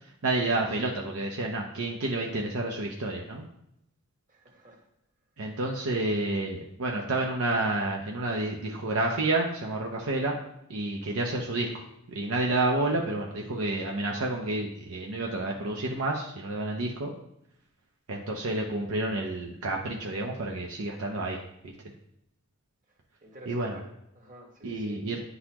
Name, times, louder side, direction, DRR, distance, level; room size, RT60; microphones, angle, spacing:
voice 1, 0.2-3.5 5.4-10.4 10.7-17.1 18.1-21.7 23.5-23.8 24.6-25.2, right 2 dB, 70° right, 0 dB, 0.7 m, -30 dB
voice 2, 4.3-4.8 23.2-23.9 24.1-25.1, right 1 dB, 35° right, 0 dB, 1.4 m, -50 dB
9.6 x 3.9 x 2.9 m, 0.81 s
head